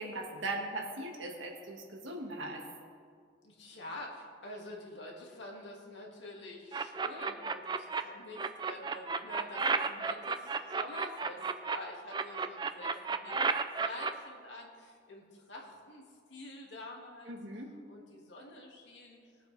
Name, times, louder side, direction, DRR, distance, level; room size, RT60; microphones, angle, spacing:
voice 1, 0.0-2.7 17.3-17.7, right 2 dB, 85° right, 1 dB, 1.9 m, -39 dB
voice 2, 3.4-13.4 13.7-17.3 17.9-19.2, left 1 dB, 75° left, -1 dB, 2.2 m, -47 dB
sound 1, 6.7-8.0 8.4-11.8 12.1-14.1, right 5 dB, 20° right, 0.4 m, -32 dB
21.5 x 7.7 x 3.4 m, 2.1 s
head